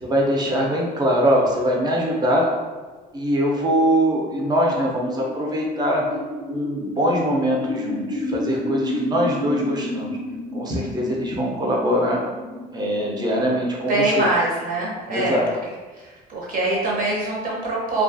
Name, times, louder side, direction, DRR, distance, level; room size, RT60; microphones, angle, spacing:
voice 1, 0.0-2.5 3.1-6.0 6.5-10.1 10.5-12.2 12.7-14.2 15.1-15.4, equal, 20° right, -2 dB, 0.6 m, -22 dB
sound 1, 3.2-15.3, left 1 dB, 55° left, 0.4 m, -32 dB
voice 2, 13.6-15.6 15.9-18.0, right 2 dB, 50° right, -4 dB, 0.9 m, -24 dB
2.3 x 2.3 x 2.6 m, 1.3 s
cardioid pair, 100°, 18 cm